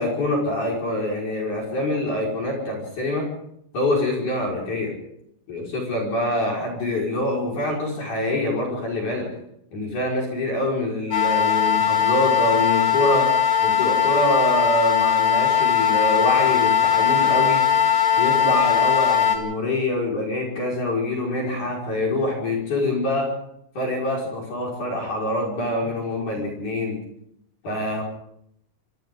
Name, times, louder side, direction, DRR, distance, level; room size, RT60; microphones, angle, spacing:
voice 1, 0.0-3.3 3.7-4.9 5.5-9.3 9.7-13.3 13.6-17.6 18.2-23.3 23.7-27.0 27.6-28.0, left 1 dB, 40° left, -1 dB, 6.4 m, -25 dB
sound 1, 11.1-19.4, left 8 dB, 70° left, 5.3 m, -19 dB
27.0 x 24.5 x 3.9 m, 0.74 s
omnidirectional pair, 5.8 m